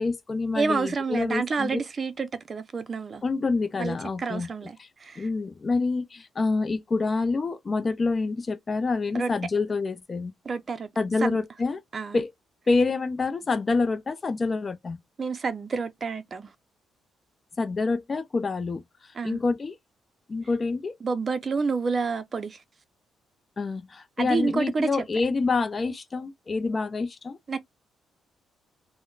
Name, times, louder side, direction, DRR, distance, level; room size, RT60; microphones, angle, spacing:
voice 1, 0.0-1.8 3.2-4.5 5.2-10.3 11.0-11.8 12.1-12.3 12.7-15.0 17.6-18.8 19.2-19.8 20.3-20.9 23.6-27.4, left 3 dB, 35° left, 0.5 m, -27 dB
voice 2, 0.5-3.2 3.8-5.3 9.1-9.3 10.4-10.9 11.2-11.4 11.9-12.2 15.2-16.5 19.1-19.4 21.0-22.6 24.2-25.1 27.5-27.6, right 4 dB, 40° right, 0.5 m, -29 dB
3.6 x 2.1 x 2.3 m
cardioid pair, 90°, 0 cm